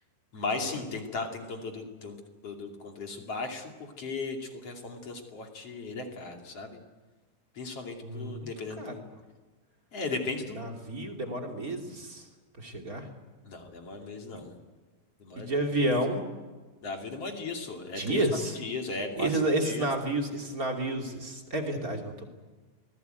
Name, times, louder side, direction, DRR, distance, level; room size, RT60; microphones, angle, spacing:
voice 1, 0.3-2.2 2.4-6.8 7.5-9.0 9.9-10.6 13.4-14.5 15.2-15.9 16.8-18.2 18.5-19.9, left 3 dB, 40° left, 3 dB, 3.4 m, -36 dB
voice 2, 8.0-8.5 8.8-8.9 10.5-12.3 12.6-13.1 15.3-16.2 17.9-18.6 19.1-22.2, right 1 dB, 25° right, 3 dB, 2.7 m, -30 dB
26.0 x 20.0 x 9.3 m, 1.3 s
omnidirectional pair, 4.4 m